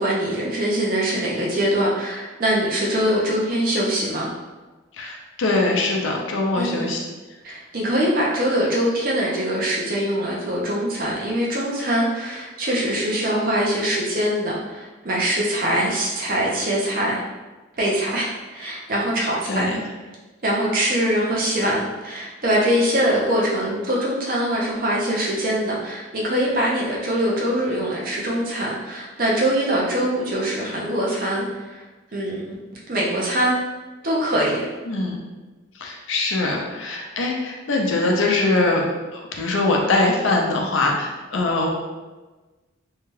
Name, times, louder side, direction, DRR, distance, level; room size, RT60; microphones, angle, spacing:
voice 1, 0.0-4.3 6.5-6.8 7.4-17.2 17.8-19.7 20.4-31.8 32.1-32.5 32.9-33.6 34.0-34.7, equal, 45° right, -4 dB, 0.6 m, -23 dB
voice 2, 5.0-7.0 19.5-19.8 34.9-35.2 35.8-38.9 39.1-41.7, left 2 dB, 75° left, 0 dB, 0.5 m, -22 dB
2.7 x 2.3 x 3.1 m, 1.2 s
head